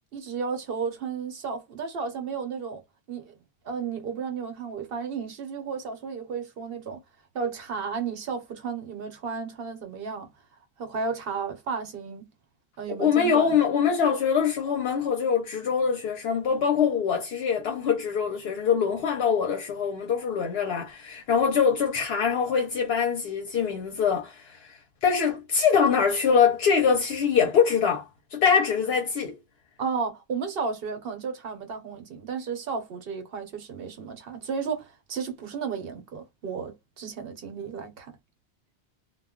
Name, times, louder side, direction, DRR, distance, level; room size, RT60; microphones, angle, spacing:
voice 1, 0.1-2.8 3.1-3.3 3.6-7.0 7.3-10.3 10.8-12.3 12.8-13.6 29.8-38.1, right 5 dB, 70° right, 0.9 m, -33 dB
voice 2, 12.9-24.7 25.0-29.3, left 6 dB, 80° left, 0.8 m, -24 dB
2.2 x 2.1 x 3.5 m
omnidirectional pair, 1.0 m